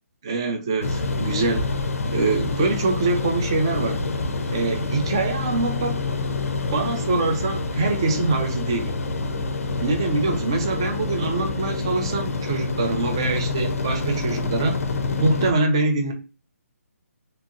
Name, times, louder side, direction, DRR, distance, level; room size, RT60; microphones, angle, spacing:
voice 1, 0.2-1.7 2.1-4.0 4.5-6.0 6.7-9.0 9.8-14.8 15.2-16.1, right 3 dB, 20° right, 0.3 m, -24 dB
sound 1, 0.8-15.5, left 3 dB, 65° left, 0.5 m, -27 dB
2.8 x 2.8 x 2.4 m
hypercardioid pair, 170°, 8 cm